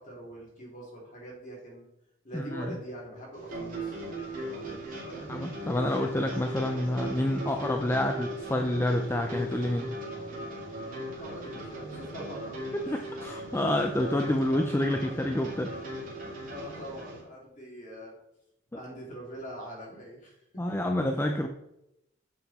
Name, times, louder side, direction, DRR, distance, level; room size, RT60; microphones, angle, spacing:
voice 1, 0.0-1.9 2.2-5.4 11.1-13.1 15.7-15.8 16.5-18.2 18.7-20.8, right 1 dB, 35° left, -3 dB, 2.8 m, -44 dB
voice 2, 2.3-2.6 5.3-9.9 12.9-15.7 20.6-21.5, left 1 dB, 10° left, 4 dB, 0.4 m, -28 dB
sound 1, 3.3-17.2, right 1 dB, 40° right, 2.5 m, -38 dB
7.5 x 5.9 x 4.2 m, 0.84 s
head